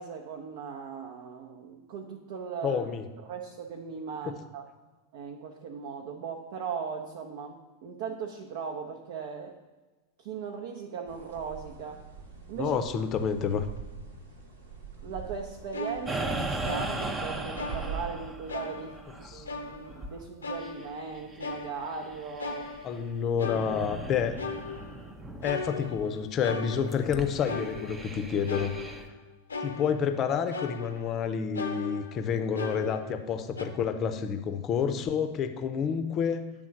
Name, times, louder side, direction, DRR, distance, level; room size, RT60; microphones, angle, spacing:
voice 1, 0.0-2.9 3.2-4.6 5.1-9.6 10.2-12.0 12.5-12.8 15.0-19.0 19.3-22.8, right 6 dB, 50° right, 2 dB, 0.7 m, -38 dB
voice 2, 2.6-3.0 12.6-13.7 19.2-19.4 22.8-24.4 25.4-28.7 29.6-36.5, left 7 dB, 30° left, 8 dB, 0.7 m, -29 dB
sound 1, 11.1-18.0, right 6 dB, 70° right, 1.2 m, -44 dB
sound 2, 15.7-17.2 17.5-18.2 18.5-19.2 19.5-20.0 20.4-22.1 22.4-23.1 23.4-24.1 24.4-25.1 25.4-27.2 27.4-28.1 28.5-29.2 29.5-30.2 30.5-31.2 31.5-33.3 33.6-33.7, left 4 dB, 75° left, 0.7 m, -38 dB
sound 3, 16.1-23.1 23.4-25.7 26.0-26.1 26.7-29.1, right 2 dB, 15° right, 0.6 m, -38 dB
8.3 x 3.6 x 6.3 m, 1.2 s
figure-of-eight pair, 90°, 0 cm